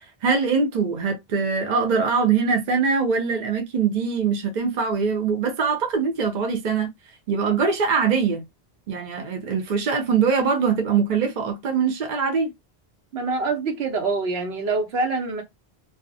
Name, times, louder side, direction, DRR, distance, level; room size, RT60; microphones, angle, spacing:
voice 1, 0.2-6.9 7.3-8.5 8.9-12.5, right 5 dB, 50° right, 0.6 m, -22 dB
voice 2, 13.1-15.4, right 3 dB, 80° right, 1.0 m, -25 dB
2.3 x 2.0 x 2.5 m
omnidirectional pair, 1.1 m